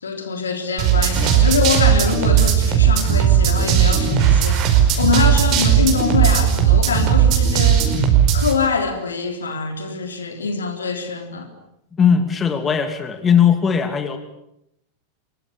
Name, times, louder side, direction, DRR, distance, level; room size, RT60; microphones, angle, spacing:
voice 1, 0.0-4.7 5.0-8.0 8.3-11.5, left 5 dB, 70° left, 7 dB, 3.5 m, -24 dB
sound 1, 0.8-8.5, right 8 dB, 40° right, 5.1 m, -16 dB
voice 2, 12.0-14.2, left 7 dB, 20° left, 8 dB, 2.6 m, -18 dB
24.5 x 23.0 x 8.6 m, 0.80 s
figure-of-eight pair, 90°, 0 cm